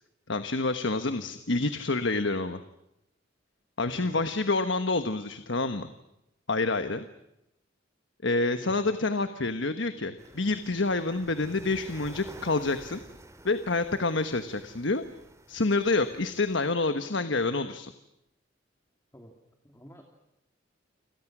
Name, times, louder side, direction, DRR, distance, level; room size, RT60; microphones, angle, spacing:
voice 1, 0.3-2.6 3.8-5.9 6.5-7.0 8.2-13.0 13.4-15.0 15.5-17.9, left 3 dB, 70° left, 9 dB, 1.3 m, -28 dB
voice 2, 0.9-1.3 3.9-4.5 8.6-8.9 19.1-19.3 19.6-20.0, equal, 15° left, 2 dB, 2.8 m, -49 dB
sound 1, 10.2-16.7, right 1 dB, 15° right, 2.5 m, -50 dB
29.5 x 26.5 x 6.2 m, 0.85 s
head